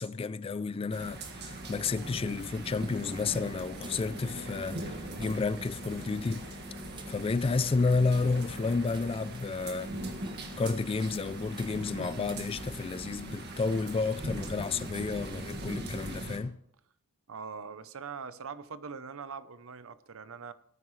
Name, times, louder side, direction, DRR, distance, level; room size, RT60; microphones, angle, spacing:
voice 1, 0.0-6.5 7.1-9.9 10.6-16.6, left 4 dB, 25° left, 0.3 m, -31 dB
sound 1, 0.9-16.4, right 1 dB, 50° right, 1.8 m, -41 dB
sound 2, 1.2-15.6, right 4 dB, 20° right, 1.0 m, -56 dB
sound 3, 2.5-14.0, left 1 dB, 55° left, 1.0 m, -51 dB
voice 2, 17.3-20.5, right 5 dB, 65° right, 0.7 m, -42 dB
17.5 x 9.4 x 3.2 m
head